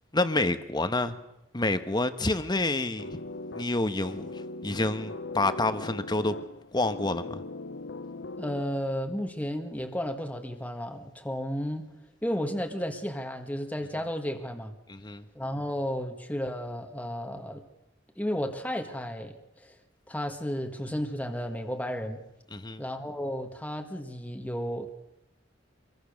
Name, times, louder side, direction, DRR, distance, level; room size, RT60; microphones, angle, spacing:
voice 1, 0.1-1.2 1.5-3.1 3.5-6.4 6.7-7.4 14.9-15.2 22.5-22.8, left 2 dB, 25° left, 1.3 m, -28 dB
sound 1, 3.0-9.0, left 2 dB, 75° left, 0.8 m, -40 dB
voice 2, 8.4-11.9 12.2-14.7 15.4-17.6 18.2-19.7 20.1-22.2 22.8-24.9, equal, 10° left, 1.7 m, -33 dB
26.5 x 22.5 x 6.5 m
head